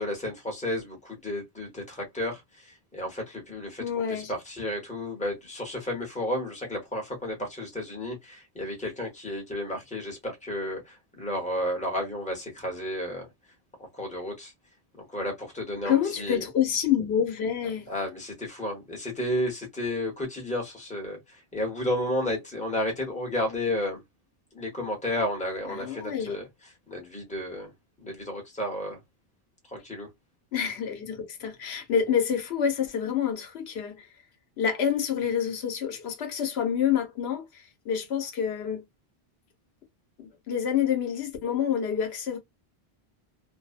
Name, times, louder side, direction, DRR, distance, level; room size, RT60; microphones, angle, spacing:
voice 1, 0.0-13.3 13.8-14.5 15.0-16.5 17.6-24.0 24.5-27.7 28.0-29.0 29.7-30.1, left 1 dB, 10° left, 0.8 m, -32 dB
voice 2, 3.8-4.3 15.8-17.9 25.7-26.4 30.5-34.1 34.6-38.8 40.2-42.4, left 8 dB, 85° left, 0.9 m, -28 dB
2.6 x 2.0 x 2.3 m
omnidirectional pair, 1.0 m